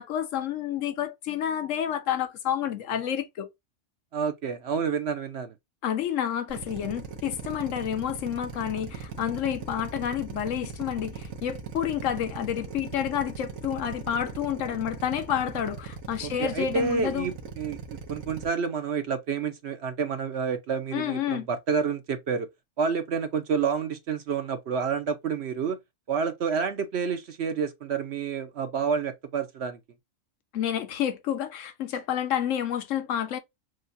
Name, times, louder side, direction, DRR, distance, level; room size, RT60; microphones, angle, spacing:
voice 1, 0.0-3.5 5.8-17.3 20.9-21.5 30.5-33.4, left 9 dB, 70° left, 1.1 m, -29 dB
voice 2, 4.1-5.5 16.2-22.5 22.8-25.8 26.1-29.8, right 6 dB, 60° right, 0.9 m, -29 dB
Drill, 6.5-18.5, right 6 dB, 85° right, 1.4 m, -39 dB
6.3 x 2.2 x 2.6 m
omnidirectional pair, 1.4 m